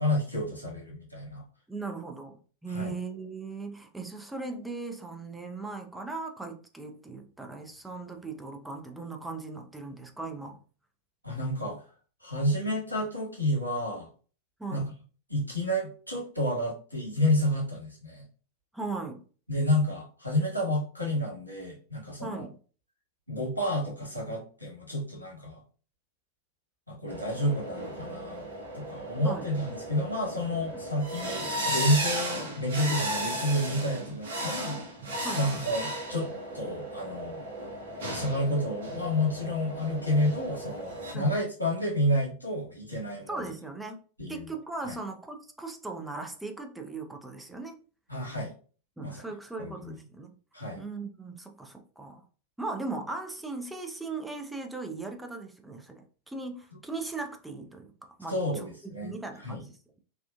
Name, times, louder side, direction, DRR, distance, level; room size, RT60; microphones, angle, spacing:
voice 1, 0.0-1.4 2.7-2.9 11.2-11.8 12.2-14.1 14.7-14.8 15.3-18.2 19.5-22.5 23.3-25.6 26.9-28.4 28.7-34.8 35.3-36.3 36.5-37.4 38.1-43.4 44.2-44.5 44.8-45.0 48.1-48.5 49.0-49.2 49.6-50.0 50.5-50.8 58.3-59.1 59.4-59.6, left 1 dB, 85° right, 1.2 m, -30 dB
voice 2, 1.7-10.6 14.6-14.9 18.7-19.2 22.2-22.5 29.2-29.5 30.7-30.8 35.2-35.5 41.1-41.3 43.3-44.0 44.3-47.8 49.0-50.3 50.7-52.2 52.6-58.7 59.0-60.0, right 3 dB, 5° right, 0.5 m, -38 dB
sound 1, 27.1-41.1, right 1 dB, 65° right, 0.9 m, -35 dB
3.5 x 2.3 x 2.4 m
figure-of-eight pair, 90°, 0 cm